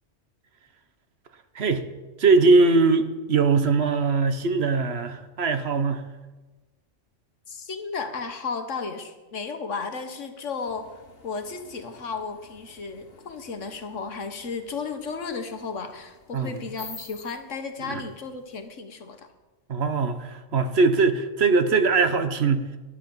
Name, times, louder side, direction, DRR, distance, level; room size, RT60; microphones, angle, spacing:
voice 1, 2.2-6.0 16.3-16.6 17.8-18.0 19.7-22.8, right 4 dB, 60° right, 10 dB, 1.2 m, -21 dB
voice 2, 7.5-19.3, left 4 dB, 85° left, 7 dB, 1.7 m, -34 dB
sound 1, 10.6-18.7, left 4 dB, 55° left, 1.6 m, -50 dB
11.5 x 11.5 x 7.1 m, 1.2 s
omnidirectional pair, 1.2 m